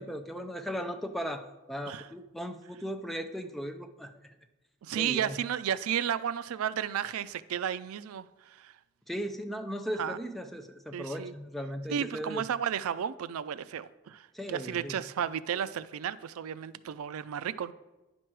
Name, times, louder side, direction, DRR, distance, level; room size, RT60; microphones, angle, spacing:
voice 1, 0.0-4.3 5.0-5.4 9.1-12.4 14.3-15.0, equal, ahead, 0.4 m, -37 dB
voice 2, 4.8-8.7 10.0-10.2 10.9-11.3 11.9-17.7, right 9 dB, 80° right, 0.4 m, -33 dB
9.8 x 6.1 x 4.6 m
head